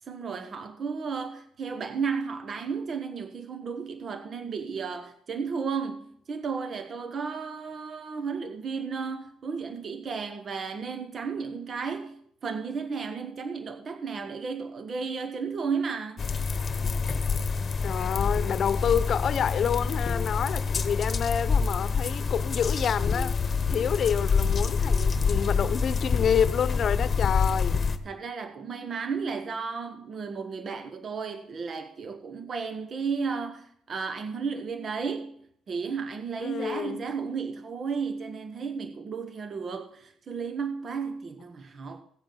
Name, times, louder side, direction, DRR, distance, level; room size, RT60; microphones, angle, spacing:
voice 1, 0.1-16.3 23.8-23.9 28.0-42.0, right 5 dB, 50° right, 1.2 m, -33 dB
sound 1, 16.2-28.0, left 5 dB, 40° left, 1.2 m, -27 dB
voice 2, 17.8-27.8 36.4-37.1, left 8 dB, 60° left, 0.8 m, -28 dB
16.5 x 7.9 x 5.9 m
cardioid pair, 90°, 0 cm